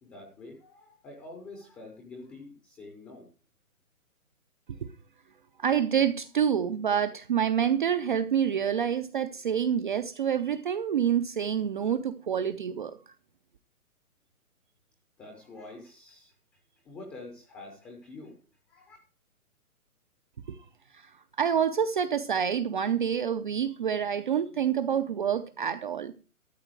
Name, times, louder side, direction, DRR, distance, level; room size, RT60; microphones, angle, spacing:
voice 1, 0.0-3.3 15.2-16.3 16.8-18.4 18.7-19.0, left 2 dB, 5° left, 3 dB, 0.7 m, -46 dB
voice 2, 5.6-13.1 20.5-20.6 20.9-26.1, right 8 dB, 35° right, 9 dB, 0.6 m, -27 dB
13.0 x 7.3 x 4.7 m, 0.35 s
hypercardioid pair, 155°, 44 cm